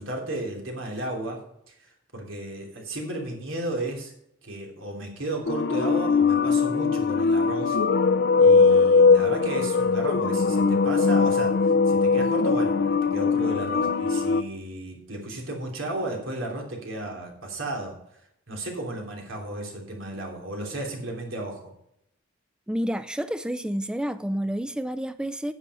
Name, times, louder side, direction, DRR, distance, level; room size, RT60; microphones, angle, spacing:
voice 1, 0.0-1.4 1.7-4.1 4.4-7.8 8.4-18.0 18.5-21.7, right 1 dB, 85° right, 3.2 m, -34 dB
sound 1, 5.5-14.4, left 4 dB, 60° left, 0.5 m, -21 dB
voice 2, 22.7-25.5, equal, 5° right, 0.3 m, -29 dB
10.0 x 7.3 x 5.4 m
head